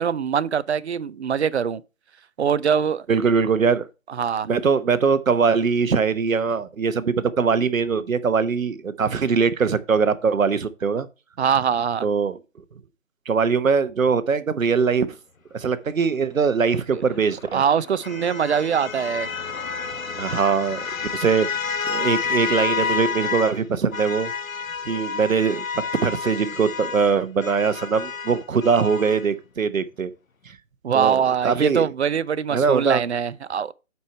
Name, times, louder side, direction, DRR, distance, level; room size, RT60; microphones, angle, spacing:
voice 1, 0.0-1.8 2.4-3.1 4.1-4.5 11.4-12.1 16.9-17.0 17.5-19.3 30.8-33.7, right 7 dB, 55° right, 0.5 m, -23 dB
voice 2, 3.1-3.9 4.5-11.1 12.0-12.4 13.3-15.1 15.5-17.6 20.2-20.9 21.1-24.3 24.8-25.6 26.0-30.1 30.5-30.6 30.9-31.2 31.4-31.9 32.5-33.0, right 5 dB, 80° right, 1.0 m, -21 dB
sound 1, 17.0-23.6 23.9-29.3, left 6 dB, 90° left, 1.1 m, -30 dB
8.4 x 4.6 x 4.3 m
figure-of-eight pair, 160°, 40 cm